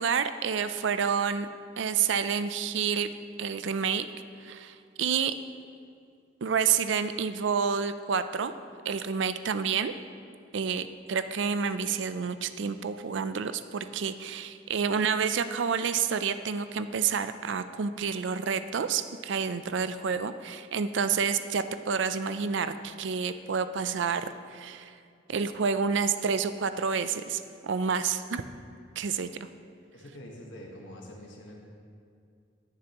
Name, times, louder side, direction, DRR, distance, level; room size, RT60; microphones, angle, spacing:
voice 1, 0.0-1.5 1.8-3.1 3.4-4.1 4.4-5.4 6.4-8.5 8.8-9.9 10.5-24.9 25.3-28.4 29.0-29.3, right 6 dB, 70° right, 11 dB, 0.5 m, -29 dB
voice 2, 29.9-31.5, equal, 75° left, -1 dB, 1.4 m, -45 dB
19.5 x 6.8 x 3.0 m, 2.3 s
head